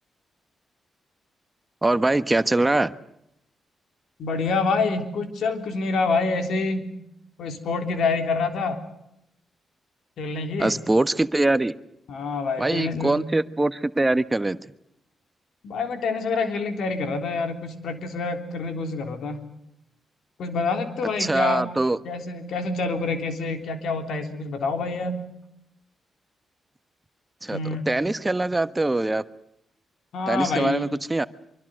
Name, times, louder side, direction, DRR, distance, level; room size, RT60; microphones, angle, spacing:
voice 1, 1.8-2.9 10.6-11.7 12.6-14.6 21.2-22.0 27.4-27.6 27.9-29.2 30.3-31.3, right 2 dB, 20° right, 13 dB, 1.2 m, -22 dB
voice 2, 4.2-6.9 7.4-8.8 10.2-10.7 12.1-13.2 15.6-19.4 20.4-21.6 22.0-25.2 27.5-27.9 30.1-30.9, left 4 dB, 75° left, 6 dB, 3.5 m, -27 dB
25.0 x 24.0 x 7.8 m, 0.80 s
supercardioid pair, 50°, 0 cm